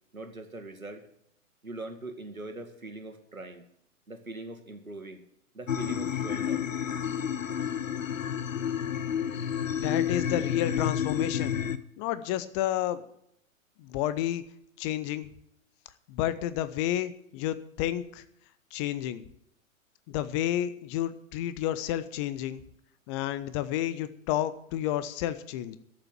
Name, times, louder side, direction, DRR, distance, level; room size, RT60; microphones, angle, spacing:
voice 1, 0.1-1.0 1.6-3.6 4.1-5.2 5.5-6.7, right 2 dB, 85° right, 5 dB, 2.1 m, -41 dB
sound 1, 5.7-11.8, left 8 dB, 70° left, 0.9 m, -30 dB
voice 2, 9.8-11.6 12.0-13.0 13.8-14.4 14.8-15.3 16.1-18.2 18.7-19.3 20.1-22.6 23.1-25.8, left 12 dB, 20° left, 14 dB, 0.7 m, -30 dB
12.5 x 7.3 x 9.2 m, 0.73 s
figure-of-eight pair, 110°, 41 cm